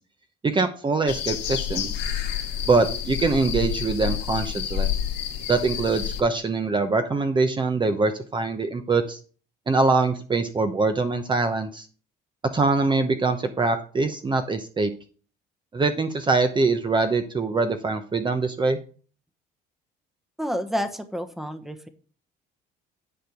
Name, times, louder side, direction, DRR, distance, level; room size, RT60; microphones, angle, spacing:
voice 1, 0.4-1.9 2.7-4.9 5.5-9.2 9.7-11.9 12.5-14.9 15.7-18.8, right 3 dB, 25° right, 7 dB, 0.9 m, -23 dB
sound 1, 1.1-6.2, left 10 dB, 75° left, 2.2 m, -29 dB
voice 2, 20.4-21.9, equal, ahead, 8 dB, 1.1 m, -29 dB
10.0 x 4.4 x 6.5 m, 0.40 s
cardioid pair, 100°, 19 cm